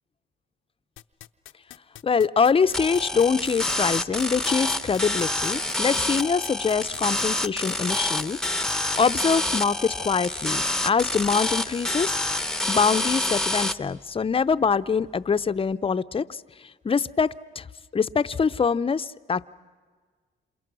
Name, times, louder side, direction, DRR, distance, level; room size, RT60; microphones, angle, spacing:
sound 1, 1.0-8.7, left 14 dB, 80° left, 0.7 m, -44 dB
voice 1, 2.0-8.4 8.9-12.2 12.7-17.7 17.9-19.4, left 5 dB, 30° left, 13 dB, 0.7 m, -24 dB
sound 2, 2.7-13.7, left 1 dB, 5° left, 0.9 m, -27 dB
28.0 x 27.5 x 6.2 m, 1.5 s
cardioid pair, 90°, 20 cm